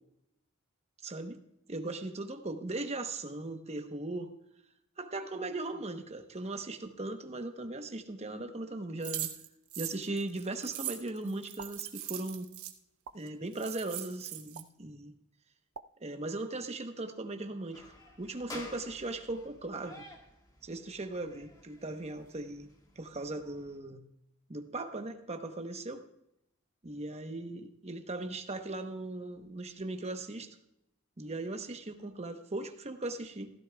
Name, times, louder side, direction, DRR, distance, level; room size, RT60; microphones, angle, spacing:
voice 1, 1.0-1.4 1.7-4.3 5.0-9.3 9.8-12.5 13.1-15.1 16.0-17.8 18.2-20.0 20.6-22.7 23.0-24.0 24.5-26.0 26.8-30.5 31.2-33.5, right 2 dB, 30° right, 7 dB, 0.9 m, -38 dB
sound 1, 9.0-12.7 13.3-13.4 13.5-14.6, right 13 dB, 80° right, 1.0 m, -40 dB
sound 2, 11.6-11.7 13.0-13.2 14.5-14.7 15.7-15.9, right 5 dB, 60° right, 0.5 m, -45 dB
sound 3, 17.7-23.8, left 1 dB, 20° left, 1.7 m, -51 dB
16.0 x 14.0 x 2.3 m, 0.80 s
head